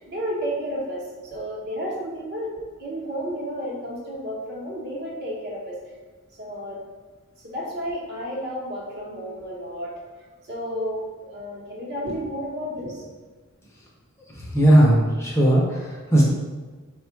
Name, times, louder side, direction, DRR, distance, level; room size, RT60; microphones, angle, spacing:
voice 1, 0.0-2.5 2.8-5.9 6.3-6.8 7.4-9.9 10.4-13.0, equal, 50° right, -4 dB, 1.0 m, -32 dB
voice 2, 14.3-16.2, right 1 dB, 15° left, -4 dB, 0.6 m, -18 dB
3.7 x 2.4 x 4.4 m, 1.4 s
head